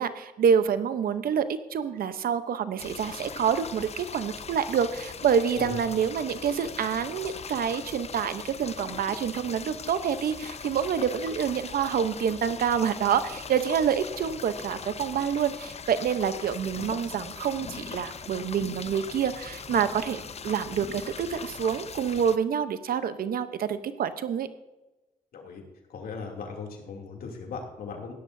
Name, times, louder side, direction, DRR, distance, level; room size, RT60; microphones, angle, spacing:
voice 1, 0.0-24.5, right 7 dB, 80° right, 12 dB, 0.9 m, -27 dB
sound 1, 2.8-22.4, left 6 dB, 45° left, 0.6 m, -40 dB
voice 2, 25.3-25.6 25.9-28.1, left 5 dB, 85° left, 1 dB, 2.8 m, -38 dB
16.5 x 12.0 x 2.7 m, 1.1 s
cardioid pair, 75°, 15 cm